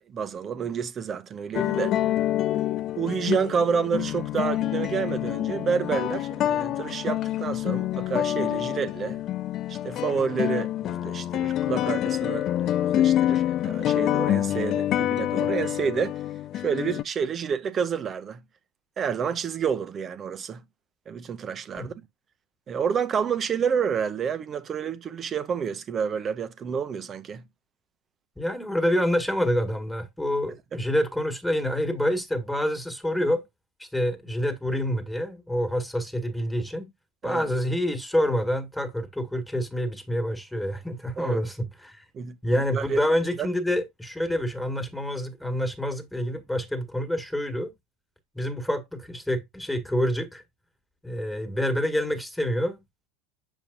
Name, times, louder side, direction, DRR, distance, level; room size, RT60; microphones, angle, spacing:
voice 1, 0.0-1.9 3.0-9.2 9.7-16.2 16.6-18.4 19.0-20.6 21.1-21.9 22.7-27.4 37.2-37.4 41.2-41.4 42.1-43.0 43.4-43.5, right 6 dB, 30° right, 0.8 m, -29 dB
sound 1, 1.5-17.0, left 12 dB, 40° left, 0.4 m, -27 dB
voice 2, 28.4-33.4 33.8-36.9 37.2-42.0 42.4-47.7 48.4-50.4 51.0-52.8, equal, 5° left, 1.7 m, -27 dB
7.2 x 5.3 x 2.5 m
figure-of-eight pair, 80°, 0 cm